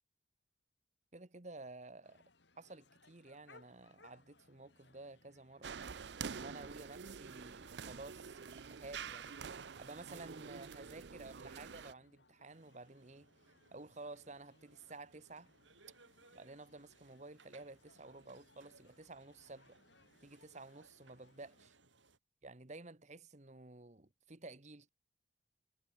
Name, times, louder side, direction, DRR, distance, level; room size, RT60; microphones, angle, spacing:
voice 1, 1.1-2.2 2.6-5.8 6.3-9.4 9.8-13.3 13.7-15.5 16.3-19.8 20.2-21.7 22.4-24.9, right 2 dB, 40° right, 1.4 m, -52 dB
sound 1, 2.0-21.7, left 3 dB, 70° left, 4.5 m, -69 dB
sound 2, 5.6-11.9, right 6 dB, 65° right, 0.6 m, -47 dB
sound 3, 12.4-22.2, right 3 dB, 90° right, 6.5 m, -67 dB
head